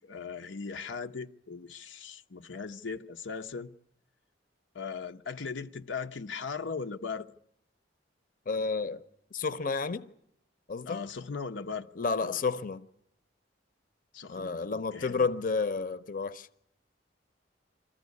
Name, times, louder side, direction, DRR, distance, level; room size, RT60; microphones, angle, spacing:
voice 1, 0.0-3.7 4.7-7.3 10.9-11.9 12.2-12.4 14.1-15.3, left 5 dB, 90° left, 0.8 m, -38 dB
voice 2, 8.5-9.0 9.3-10.1 10.7-11.0 12.0-12.8 14.3-16.5, left 4 dB, 50° left, 0.7 m, -31 dB
23.5 x 14.5 x 9.5 m
head